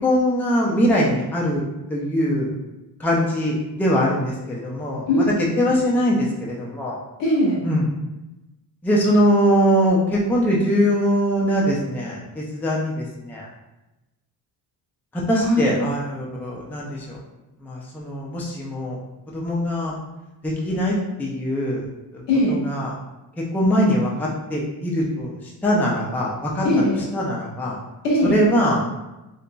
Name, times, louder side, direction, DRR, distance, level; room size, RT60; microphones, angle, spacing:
voice 1, 0.0-1.6 1.9-2.5 3.0-5.2 5.6-7.0 7.6-7.9 8.8-13.5 15.1-17.2 17.6-19.0 19.3-19.9 20.4-21.9 22.1-22.2 22.5-22.9 23.4-26.7 27.1-27.8 28.2-28.8, equal, 5° left, -4 dB, 0.4 m, -22 dB
voice 2, 5.1-5.7 7.2-7.6 15.3-15.6 22.3-22.6 26.6-27.0 28.0-28.4, left 1 dB, 85° left, -4 dB, 1.2 m, -20 dB
3.9 x 2.9 x 2.2 m, 0.99 s
cardioid pair, 150°, 42 cm